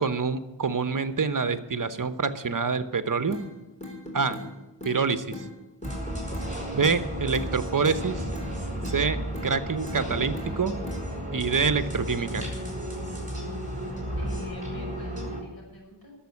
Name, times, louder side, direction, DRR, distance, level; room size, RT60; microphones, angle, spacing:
voice 1, 0.0-3.4 4.1-4.4 4.8-5.5 6.7-8.2 8.9-10.8 11.3-12.4, right 5 dB, 50° right, 11 dB, 0.9 m, -26 dB
sound 1, 3.3-3.5 3.8-4.5 4.8-5.0 5.3-5.5 5.8-6.5 6.8-7.0 7.3-7.5 7.8-8.5 8.8-9.0 9.3-9.5 9.8-10.5 10.8-11.0, left 1 dB, 15° left, 3.5 m, -39 dB
sound 2, 5.8-15.4, equal, 20° right, 5.1 m, -33 dB
voice 2, 14.1-16.1, right 1 dB, 55° left, -1 dB, 5.8 m, -47 dB
11.5 x 7.2 x 9.6 m, 1.0 s
wide cardioid pair, 60°, 43 cm